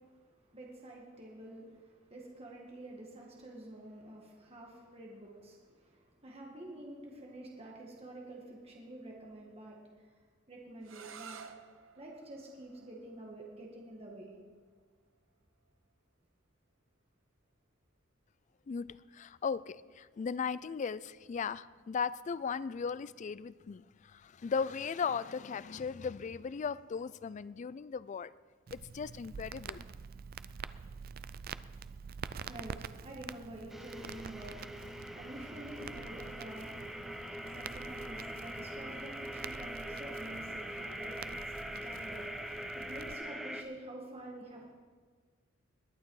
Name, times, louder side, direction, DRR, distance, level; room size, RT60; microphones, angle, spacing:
voice 1, 0.5-9.8 10.5-11.4 12.0-14.3 32.3-44.7, right 1 dB, 30° right, -2 dB, 1.8 m, -48 dB
sound 1, 10.8-16.5, right 6 dB, 80° right, 0.9 m, -55 dB
voice 2, 19.1-28.3 28.7-29.8, left 6 dB, 35° left, 18 dB, 0.3 m, -37 dB
Crackle, 28.7-43.1, right 6 dB, 50° right, 0.4 m, -47 dB
sound 2, 33.7-43.6, equal, ahead, 0.7 m, -43 dB
21.0 x 8.9 x 4.8 m, 1.5 s
head